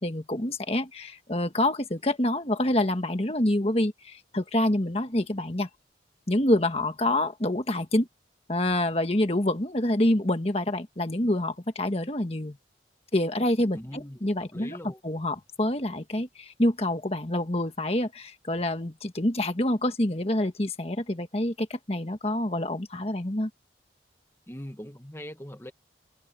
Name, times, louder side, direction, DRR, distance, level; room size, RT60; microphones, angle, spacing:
voice 1, 0.0-5.7 6.3-8.1 8.5-12.6 13.1-14.8 15.0-23.5, left 1 dB, 35° left, 1.6 m, -27 dB
voice 2, 13.7-15.0 24.5-25.7, equal, 15° left, 1.5 m, -41 dB
head